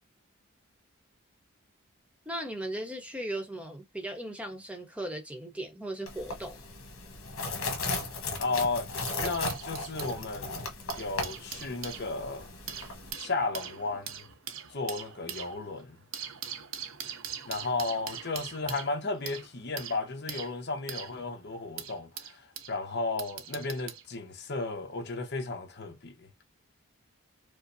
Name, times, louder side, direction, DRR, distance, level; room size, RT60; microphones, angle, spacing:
voice 1, 2.3-6.6, right 1 dB, 5° right, 0.9 m, -37 dB
sound 1, 6.1-13.1, left 3 dB, 80° left, 1.2 m, -36 dB
sound 2, 8.0-10.1 10.7-22.7 23.2-24.1 24.9-25.1, right 8 dB, 70° right, 0.7 m, -42 dB
voice 2, 8.4-8.9 9.2-10.7 10.9-12.5 13.1-14.3 14.7-16.0 17.5-22.4 22.7-26.3, left 3 dB, 50° left, 1.0 m, -34 dB
4.9 x 2.1 x 2.7 m
head